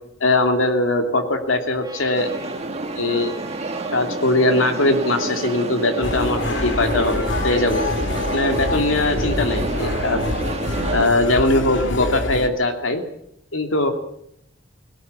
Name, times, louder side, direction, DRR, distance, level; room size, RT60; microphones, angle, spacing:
voice 1, 0.2-2.3 3.0-3.4 3.9-7.8 8.3-10.2 10.9-13.0 13.5-13.9, left 2 dB, 85° left, 5 dB, 2.8 m, -20 dB
Trumpet, 1.8-8.0, right 2 dB, 20° right, 5.2 m, -42 dB
sound 1, 2.1-11.1, right 2 dB, 35° right, 1.8 m, -29 dB
sound 2, 6.0-12.5, left 2 dB, 65° left, 2.2 m, -26 dB
19.5 x 17.5 x 8.4 m, 0.74 s
head